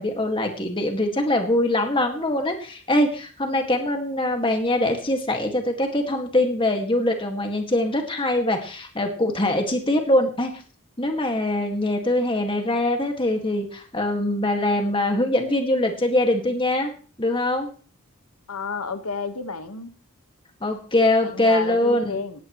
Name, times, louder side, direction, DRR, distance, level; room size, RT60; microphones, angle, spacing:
voice 1, 0.0-10.5 11.0-16.9 17.2-17.7 20.6-22.2, left 1 dB, 25° left, 4 dB, 2.0 m, -23 dB
voice 2, 18.5-19.9 21.2-22.4, left 4 dB, 85° left, 9 dB, 1.5 m, -31 dB
17.5 x 13.0 x 3.1 m, 0.39 s
head